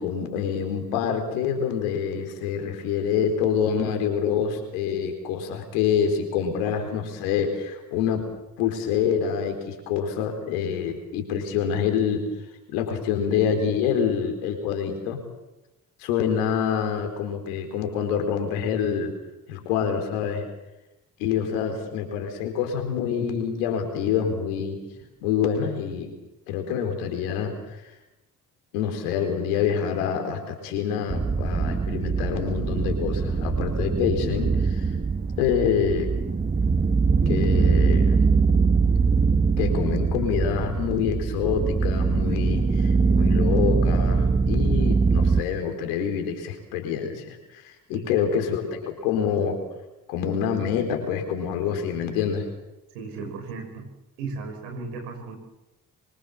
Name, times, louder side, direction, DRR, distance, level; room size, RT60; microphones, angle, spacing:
voice 1, 0.0-8.2 8.6-12.3 12.7-15.2 16.0-19.2 19.5-20.5 21.2-24.9 25.2-26.2 26.5-27.6 28.7-34.9 35.4-36.2 37.3-38.2 39.6-49.6 50.1-52.5, left 7 dB, 75° left, 5 dB, 4.5 m, -26 dB
sound 1, 31.1-45.4, right 4 dB, 20° right, 1.2 m, -22 dB
voice 2, 47.9-48.3 52.9-53.9 54.2-55.4, right 4 dB, 80° right, 3 dB, 5.9 m, -36 dB
25.5 x 24.5 x 7.3 m, 0.97 s
figure-of-eight pair, 40°, 46 cm